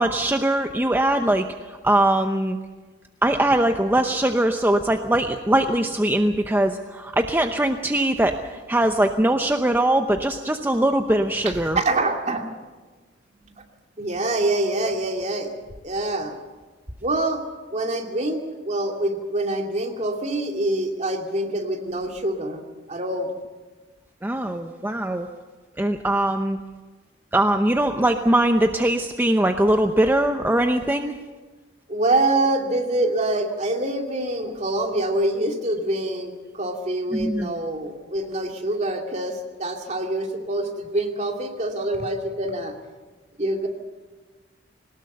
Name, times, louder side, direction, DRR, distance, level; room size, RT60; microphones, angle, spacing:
voice 1, 0.0-2.6 3.2-11.8 24.2-25.3 25.8-26.6 27.3-31.1 37.1-37.5, right 1 dB, 10° right, 5 dB, 0.8 m, -21 dB
voice 2, 11.4-12.4 14.0-15.5 15.8-16.4 17.0-17.4 17.7-22.6 22.9-23.3 31.9-42.7 43.4-43.7, right 2 dB, 40° right, 2 dB, 2.6 m, -25 dB
22.0 x 19.0 x 6.8 m, 1.3 s
head